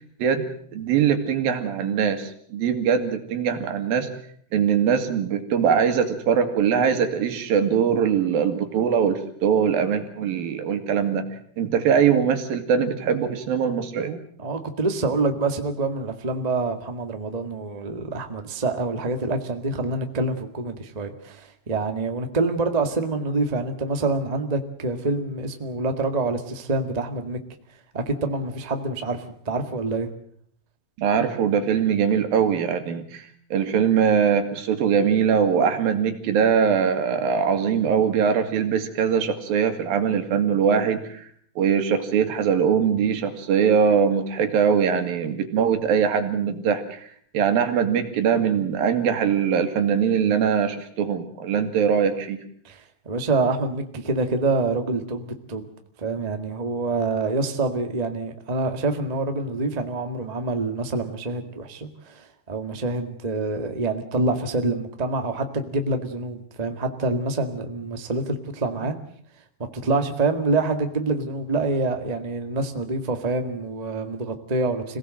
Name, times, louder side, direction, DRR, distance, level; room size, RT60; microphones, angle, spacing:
voice 1, 0.2-4.1 4.5-11.3 11.6-14.2 31.0-33.3 33.5-41.3 41.6-47.1 47.3-52.4, right 7 dB, 70° right, 8 dB, 3.7 m, -22 dB
voice 2, 14.4-27.4 27.9-30.1 52.6-55.6 56.0-68.9 69.6-75.0, right 3 dB, 90° right, 6 dB, 0.3 m, -26 dB
26.5 x 18.0 x 7.7 m, 0.63 s
omnidirectional pair, 4.5 m